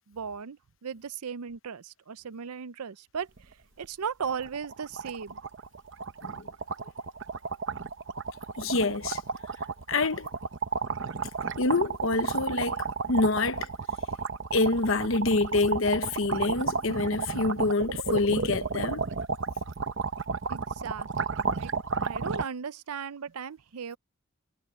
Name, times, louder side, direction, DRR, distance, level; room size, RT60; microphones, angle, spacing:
voice 1, 0.1-3.3 3.8-5.4 20.5-21.7 22.0-24.0, right 6 dB, 90° right, 0.6 m, -37 dB
sound 1, 3.4-3.5 3.8-3.9 4.2-22.4, right 4 dB, 55° right, 0.9 m, -32 dB
voice 2, 8.6-9.2 9.9-10.3 11.6-13.7 14.5-19.0, left 3 dB, 60° left, 0.9 m, -26 dB
head